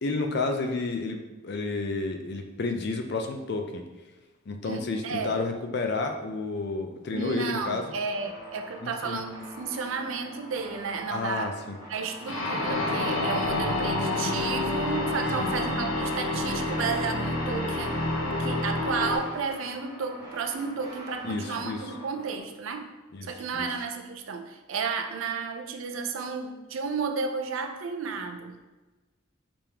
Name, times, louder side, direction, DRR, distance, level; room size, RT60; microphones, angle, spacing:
voice 1, 0.0-3.8 4.5-7.9 8.8-9.2 11.1-11.8 15.4-15.6 21.2-21.9 23.1-23.7, left 3 dB, 50° left, 4 dB, 0.4 m, -31 dB
voice 2, 4.6-5.3 7.1-11.5 11.9-18.0 18.4-22.9 23.2-28.6, right 5 dB, 70° right, 5 dB, 0.4 m, -32 dB
sound 1, 7.8-22.4, equal, 15° right, 0.6 m, -45 dB
sound 2, 12.3-19.2, left 2 dB, 70° left, 0.9 m, -28 dB
5.1 x 3.5 x 2.9 m, 1.2 s
head